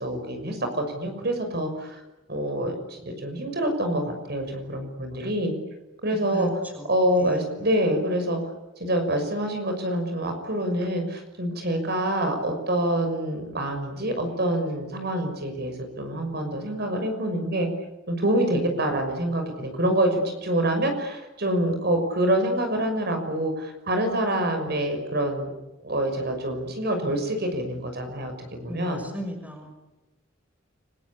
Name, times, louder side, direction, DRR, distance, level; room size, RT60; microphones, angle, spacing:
voice 1, 0.0-2.0 2.3-5.5 6.0-6.5 6.9-8.4 8.8-17.7 18.1-25.5 25.8-29.0, right 1 dB, 55° right, 6 dB, 6.2 m, -26 dB
voice 2, 28.7-29.7, equal, 10° right, 4 dB, 6.0 m, -35 dB
29.5 x 21.5 x 8.6 m, 1.0 s
head